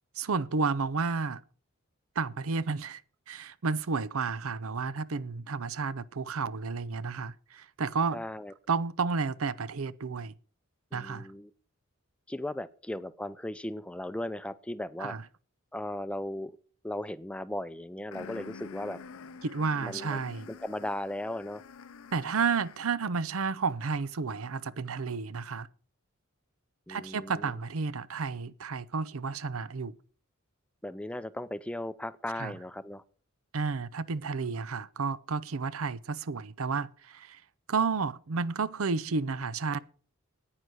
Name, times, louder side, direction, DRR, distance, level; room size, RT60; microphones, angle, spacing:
voice 1, 0.1-1.4 2.2-3.0 3.3-8.2 8.7-10.3 10.9-11.3 15.0-15.2 19.4-20.5 22.1-25.7 26.9-30.0 32.4-32.6 33.5-37.4 37.7-39.8, right 4 dB, 85° right, 0.7 m, -31 dB
voice 2, 8.1-8.5 10.9-11.5 12.3-15.1 15.7-16.6 16.8-19.0 19.8-20.2 20.5-21.6 26.9-27.5 30.8-33.0, left 1 dB, 5° left, 0.5 m, -37 dB
sound 1, 18.1-23.0, left 5 dB, 80° left, 0.6 m, -48 dB
10.0 x 9.4 x 6.3 m
head